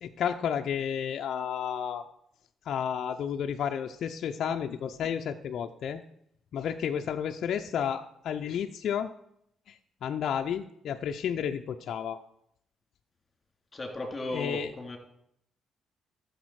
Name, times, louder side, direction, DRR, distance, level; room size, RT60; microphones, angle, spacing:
voice 1, 0.0-2.0 2.6-6.0 6.5-9.1 9.7-12.2 14.3-14.7, left 8 dB, 70° left, 5 dB, 0.6 m, -32 dB
voice 2, 13.7-15.0, left 2 dB, 25° left, 2 dB, 2.8 m, -36 dB
13.5 x 6.7 x 4.8 m, 0.73 s
cardioid pair, 90°, 0 cm